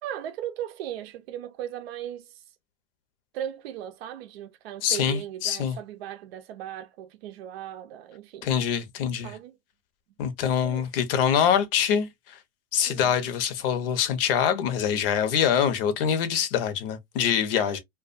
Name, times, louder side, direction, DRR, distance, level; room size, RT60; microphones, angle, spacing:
voice 1, 0.0-2.4 3.3-8.5 9.2-9.6 10.6-10.9 12.9-13.2 17.5-17.8, right 11 dB, 75° right, 0.5 m, -37 dB
voice 2, 4.8-5.8 8.4-9.4 10.2-12.4 12.7-17.8, left 8 dB, 65° left, 0.7 m, -24 dB
2.3 x 2.2 x 2.5 m
hypercardioid pair, 120°, 31 cm